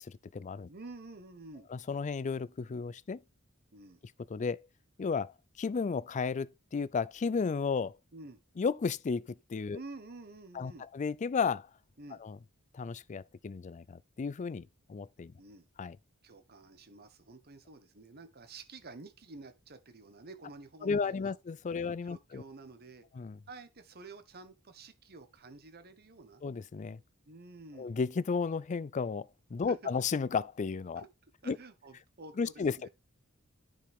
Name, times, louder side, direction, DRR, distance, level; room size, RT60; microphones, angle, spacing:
voice 1, 0.0-0.7 1.7-3.2 4.3-4.7 5.0-8.0 8.6-9.8 10.5-11.7 12.2-12.4 12.7-15.3 15.8-16.0 20.8-22.4 23.2-23.4 26.4-27.0 27.8-31.0 31.5-31.6 32.4-32.9, left 5 dB, 35° left, 0.4 m, -33 dB
voice 2, 0.7-1.7 3.7-4.0 8.1-8.4 9.7-10.9 12.0-12.2 15.4-15.7 16.2-21.4 21.7-23.0 23.5-26.4 27.2-27.9 29.7-29.9 31.0-31.1 31.4-32.9, right 3 dB, 50° right, 1.2 m, -50 dB
10.0 x 5.3 x 3.6 m
head